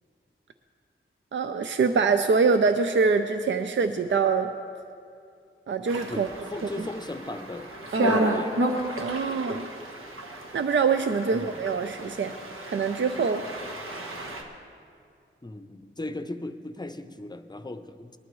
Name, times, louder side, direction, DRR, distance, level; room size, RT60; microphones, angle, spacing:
voice 1, 1.3-4.5 5.7-6.3 6.6-6.9 7.9-8.4 9.0-9.7 10.5-12.3 12.7-13.4, right 5 dB, 65° right, 8 dB, 0.5 m, -24 dB
sound 1, 5.9-14.4, right 1 dB, 85° right, 1.3 m, -32 dB
voice 2, 6.1-7.7 8.0-8.6 11.3-11.6 15.4-18.2, left 2 dB, 20° left, 9 dB, 0.6 m, -37 dB
19.5 x 12.0 x 3.1 m, 2.4 s
wide cardioid pair, 80°, 21 cm